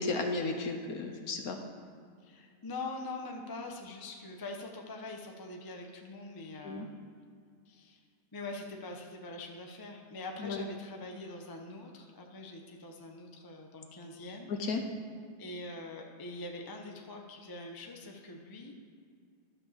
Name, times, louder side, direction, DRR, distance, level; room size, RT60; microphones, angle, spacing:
voice 1, 0.0-1.6 6.6-6.9 10.4-10.6 14.5-14.8, left 3 dB, 60° left, 5 dB, 1.2 m, -34 dB
voice 2, 2.2-7.0 7.7-8.0 8.3-14.5 15.4-18.7, left 2 dB, 20° left, 2 dB, 0.5 m, -43 dB
12.0 x 5.4 x 6.8 m, 2.2 s
omnidirectional pair, 2.0 m